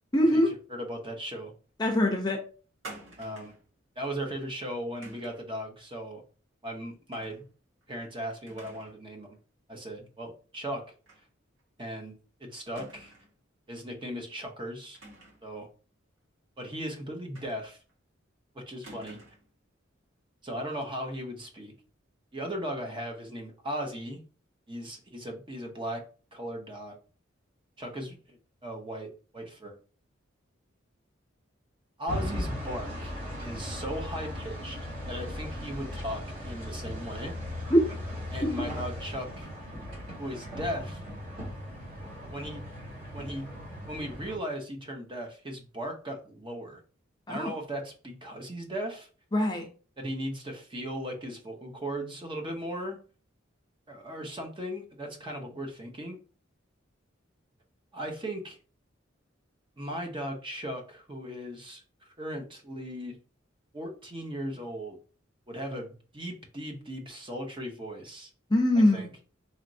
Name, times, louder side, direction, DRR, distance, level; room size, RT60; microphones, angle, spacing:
voice 1, 0.1-0.5 1.8-2.4 37.7-37.8 47.3-47.6 49.3-49.7 68.5-69.1, left 1 dB, 20° left, 3 dB, 0.6 m, -23 dB
voice 2, 0.7-1.5 3.2-3.5 4.0-6.2 6.6-7.4 7.9-9.4 9.7-10.8 11.8-12.1 12.4-13.1 13.7-15.0 15.4-15.7 16.6-17.8 18.5-19.2 20.4-21.7 22.3-24.2 24.7-26.0 26.3-27.0 27.8-29.8 32.0-33.1 33.4-34.8 35.1-37.3 38.3-39.5 40.2-41.0 42.3-42.7 43.1-43.5 43.9-46.8 47.3-49.1 50.0-53.0 53.9-56.2 57.9-58.6 59.8-61.8 62.2-63.2 63.7-65.0 65.5-68.3 68.9-69.1, equal, 25° right, 3 dB, 0.7 m, -37 dB
sound 1, 2.8-3.7 5.0-5.5 7.1-7.4 7.8-7.9 8.5-9.0 9.3-9.4 11.1-11.3 11.6-11.7 12.8-13.4 14.9-15.5 17.4-17.9 18.8-19.5, right 2 dB, 90° right, 1.3 m, -48 dB
sound 2, 32.1-44.4, left 1 dB, 45° right, 2.0 m, -38 dB
4.2 x 3.0 x 2.6 m, 0.37 s
head